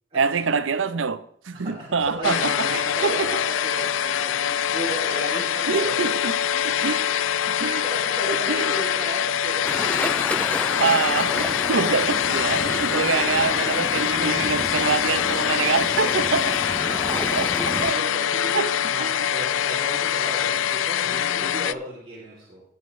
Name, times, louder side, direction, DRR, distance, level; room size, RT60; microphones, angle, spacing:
voice 1, 0.1-3.3 5.7-6.4 6.6-7.0 7.5-7.8 8.3-8.7 10.8-16.6 17.3-18.1 18.5-18.7 19.0-19.1, right 5 dB, 90° right, 0.7 m, -25 dB
voice 2, 1.5-6.2 7.4-9.8 16.5-17.4 17.6-22.6, right 1 dB, 30° right, 3.1 m, -35 dB
sound 1, 2.2-21.7, left 9 dB, 85° left, 0.4 m, -24 dB
sound 2, 9.6-17.9, left 1 dB, 5° left, 0.3 m, -31 dB
18.5 x 7.2 x 3.2 m
head